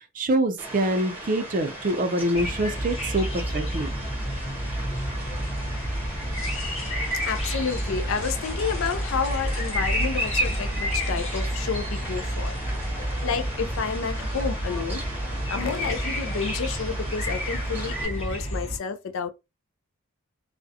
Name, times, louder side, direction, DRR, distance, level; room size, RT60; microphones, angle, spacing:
voice 1, 0.2-3.9, right 1 dB, 40° right, 0.4 m, -25 dB
Fowl, 0.6-18.1, right 1 dB, 10° right, 0.8 m, -39 dB
sound 1, 2.3-18.8, equal, 30° left, 0.7 m, -29 dB
sound 2, 3.7-13.7, left 1 dB, 10° left, 1.3 m, -44 dB
voice 2, 7.2-12.6 13.2-15.0 15.5-19.3, left 5 dB, 65° left, 0.4 m, -30 dB
2.3 x 2.1 x 2.7 m
head